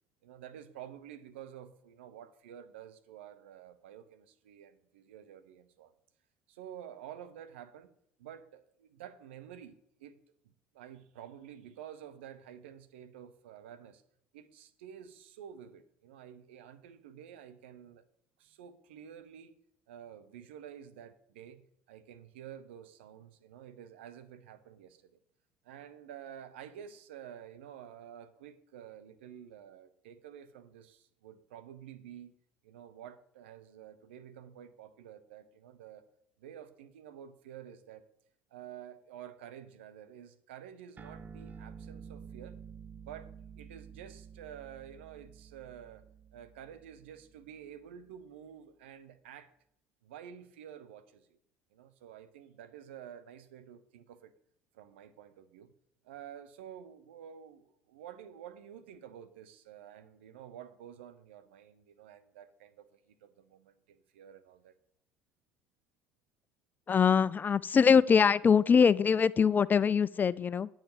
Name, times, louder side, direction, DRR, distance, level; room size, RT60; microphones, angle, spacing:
voice 1, 0.2-5.9 6.5-7.9 8.2-10.2 10.4-14.0 14.3-18.1 18.4-19.6 19.9-25.2 25.6-32.3 32.6-36.0 36.4-38.0 38.5-42.6 43.0-46.0 46.3-49.5 50.0-51.4 51.7-54.3 54.7-55.7 56.0-64.8, right 9 dB, 80° right, 11 dB, 0.8 m, -50 dB
sound 1, 41.0-47.8, right 6 dB, 30° right, 0.6 m, -50 dB
voice 2, 66.9-70.7, left 6 dB, 30° left, 19 dB, 0.4 m, -23 dB
9.1 x 4.9 x 7.2 m, 0.72 s
hypercardioid pair, 65°, 6 cm